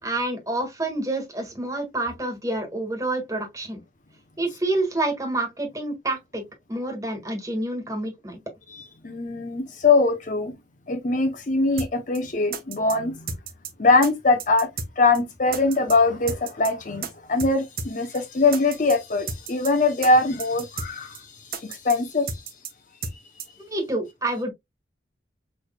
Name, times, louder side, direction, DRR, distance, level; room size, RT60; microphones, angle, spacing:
voice 1, 0.0-3.8 4.4-6.4 6.7-8.4 23.6-24.5, right 2 dB, 15° right, 1.6 m, -28 dB
voice 2, 8.7-10.5 10.9-13.2 13.8-14.7 15.0-21.2 21.6-22.3, left 3 dB, 45° left, 0.7 m, -22 dB
sound 1, 11.8-11.9 12.1-12.2 12.5-13.0 13.3-13.7 14.0-14.1 14.4-14.9 15.1-15.2 15.5-16.0 16.3-16.7 17.0-17.1 17.4-17.5 17.8-17.9 18.1-18.2 18.5-19.0 19.3-19.7 20.0-20.1 20.4-20.9 21.1-21.2 21.5-22.0 22.3-22.7 23.0-23.1 23.4-23.5, right 5 dB, 50° right, 0.9 m, -32 dB
6.2 x 3.2 x 2.2 m
head